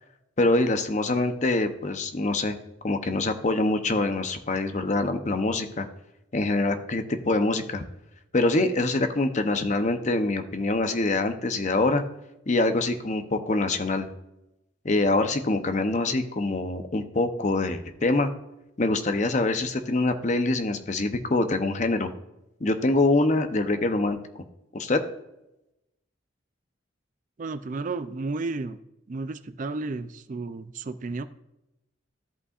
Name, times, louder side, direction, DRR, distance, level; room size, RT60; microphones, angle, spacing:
voice 1, 0.4-2.6 2.8-5.9 6.3-7.8 8.3-12.0 12.5-14.1 14.8-18.3 18.8-22.1 22.6-24.2 24.7-25.0, left 2 dB, 35° left, 8 dB, 0.7 m, -24 dB
voice 2, 27.4-28.8 29.1-31.2, right 3 dB, 40° right, 12 dB, 0.4 m, -32 dB
13.5 x 5.5 x 2.4 m, 0.90 s
head